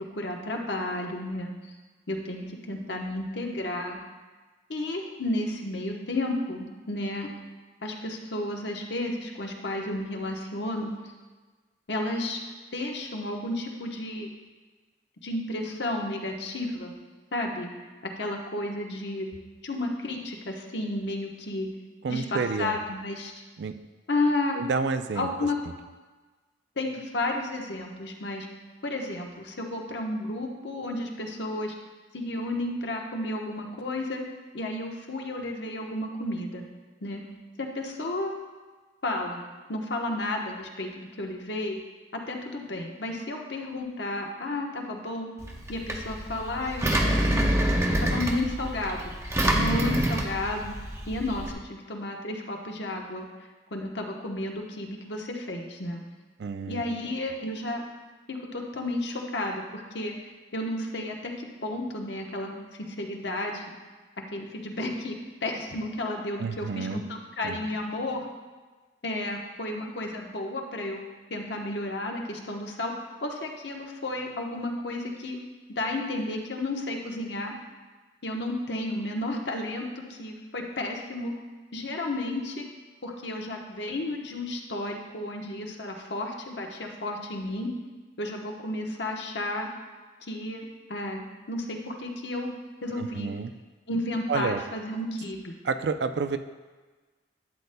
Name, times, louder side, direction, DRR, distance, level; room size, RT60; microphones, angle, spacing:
voice 1, 0.2-1.7 2.1-4.0 4.7-7.3 7.8-10.9 11.9-12.4 12.7-14.3 15.2-16.9 17.3-17.7 18.2-19.3 19.6-21.7 22.1-23.3 24.1-24.6 25.1-25.6 26.8-28.5 28.8-31.7 32.1-34.2 34.5-36.6 37.0-37.2 37.6-38.3 39.0-39.4 39.7-41.8 42.3-45.3 45.7-47.5 48.0-49.1 49.5-50.7 51.1-53.3 53.7-56.0 56.7-57.8 58.3-60.1 60.5-61.3 61.6-62.5 63.0-63.7 64.3-65.1 65.4-68.2 69.0-71.0 71.3-72.9 73.2-75.4 75.7-77.5 78.2-79.8 80.1-81.3 81.7-82.6 83.0-87.7 88.2-89.7 90.2-92.5 92.8-93.4 93.9-95.5, left 1 dB, 70° left, 1 dB, 1.1 m, -32 dB
voice 2, 22.0-22.8 23.6-23.7 24.5-25.3 56.4-56.8 66.4-67.0 67.4-67.6 92.9-93.5 94.3-94.6 95.6-96.4, right 5 dB, 70° right, 9 dB, 0.4 m, -29 dB
Engine, 45.4-51.5, right 1 dB, 15° right, 0.7 m, -27 dB
12.0 x 8.2 x 2.2 m, 1.3 s
head